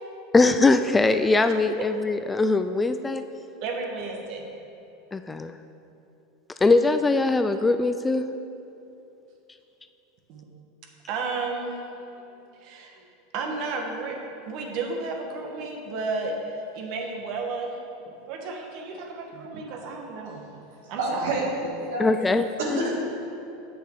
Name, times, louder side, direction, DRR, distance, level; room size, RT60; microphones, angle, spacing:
voice 1, 0.3-3.2 5.1-5.6 6.6-8.3 22.0-22.9, left 3 dB, 15° left, 9 dB, 0.3 m, -21 dB
voice 2, 3.6-4.5 10.3-10.4 11.1-11.7 12.6-12.9 13.3-14.2 14.5-16.3 16.7-17.7 18.3-20.5 20.9-21.5, right 4 dB, 60° right, 2 dB, 1.4 m, -32 dB
voice 3, 21.0-22.1 22.6-23.0, right 2 dB, 75° right, -2 dB, 2.0 m, -28 dB
8.9 x 6.5 x 4.7 m, 2.8 s
supercardioid pair, 110°, 0 cm